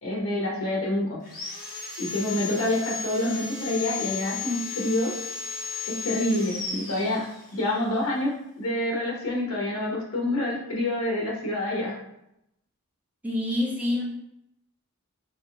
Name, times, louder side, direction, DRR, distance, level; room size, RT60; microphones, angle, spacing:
voice 1, 0.0-1.2 2.0-5.1 5.8-12.0, left 1 dB, 70° left, -3 dB, 1.4 m, -27 dB
Sawing, 1.2-7.7, left 6 dB, 45° left, 1.3 m, -35 dB
voice 2, 13.2-14.0, left 1 dB, 5° right, -4 dB, 1.0 m, -26 dB
4.1 x 3.4 x 3.6 m, 0.81 s
head